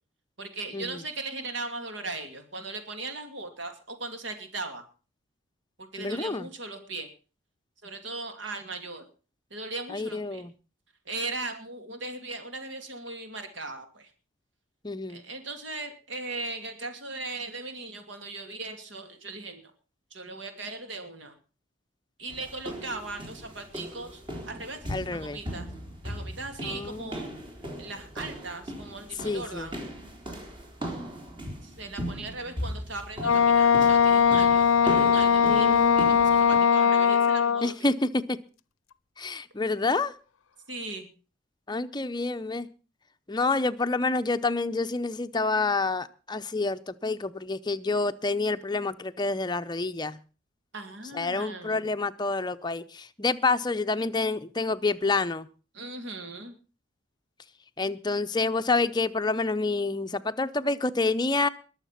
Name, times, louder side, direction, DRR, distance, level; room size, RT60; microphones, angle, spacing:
voice 1, 0.4-4.8 5.8-7.1 7.8-9.0 9.5-10.4 11.1-14.1 15.1-19.6 20.1-21.3 22.2-25.7 26.0-27.3 27.8-29.8 31.6-37.9 40.7-41.1 50.7-51.9 55.7-56.5, right 2 dB, 65° right, 6 dB, 2.5 m, -38 dB
voice 2, 6.0-6.5 9.9-10.5 14.8-15.2 24.9-25.4 26.6-27.2 29.2-29.7 35.4-36.2 37.6-38.4 39.2-40.1 41.7-42.7 43.3-50.2 51.1-55.5 57.8-61.5, left 3 dB, 20° left, 10 dB, 0.7 m, -28 dB
sound 1, 22.3-36.6, equal, 25° right, 3.8 m, -38 dB
Wind instrument woodwind instrument, 33.2-37.7, left 7 dB, 80° left, 0.6 m, -20 dB
21.5 x 7.3 x 5.8 m, 0.36 s
head